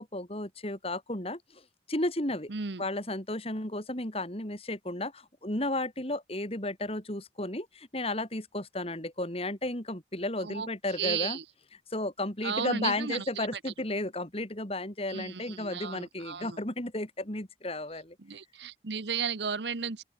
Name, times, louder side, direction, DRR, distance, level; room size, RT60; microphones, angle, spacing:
voice 1, 0.0-1.6 1.9-2.5 2.8-11.4 11.9-18.2, left 1 dB, 35° left, 4.0 m, -33 dB
voice 2, 2.5-2.9 10.4-11.4 12.4-13.5 15.1-16.6 18.2-20.0, right 6 dB, 75° right, 1.0 m, -34 dB
open air
head